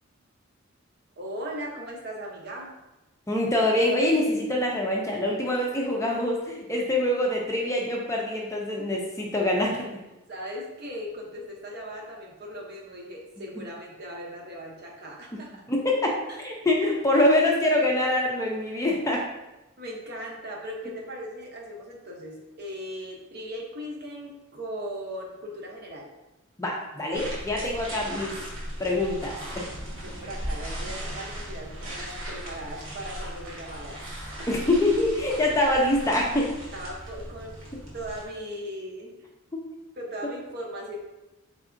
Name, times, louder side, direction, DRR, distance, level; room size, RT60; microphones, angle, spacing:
voice 1, 1.2-2.7 10.3-15.6 16.3-16.4 19.8-26.1 30.0-34.0 34.4-34.5 36.7-37.6 37.9-39.1 40.0-41.0, equal, 50° right, -2 dB, 0.7 m, -38 dB
voice 2, 3.3-9.9 15.7-19.2 26.6-28.4 28.8-29.7 34.5-36.5 39.5-39.6, left 1 dB, 15° left, -1 dB, 0.4 m, -25 dB
sound 1, 27.1-38.2, right 1 dB, 65° right, 1.1 m, -37 dB
3.9 x 3.3 x 2.5 m, 1.0 s
head